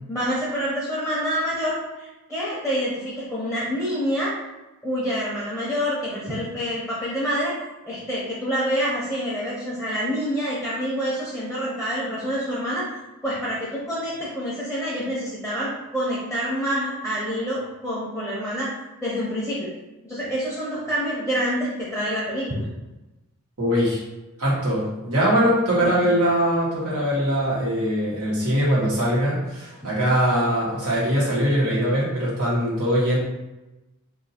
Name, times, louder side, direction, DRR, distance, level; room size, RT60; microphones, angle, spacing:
voice 1, 0.1-4.3 4.8-7.5 7.9-12.8 13.2-18.7 19.0-19.7 20.0-22.7 25.8-26.0, equal, ahead, -7 dB, 0.7 m, -27 dB
voice 2, 23.6-24.0 24.4-33.2, equal, 80° right, -6 dB, 1.4 m, -22 dB
2.7 x 2.7 x 4.1 m, 1.0 s
head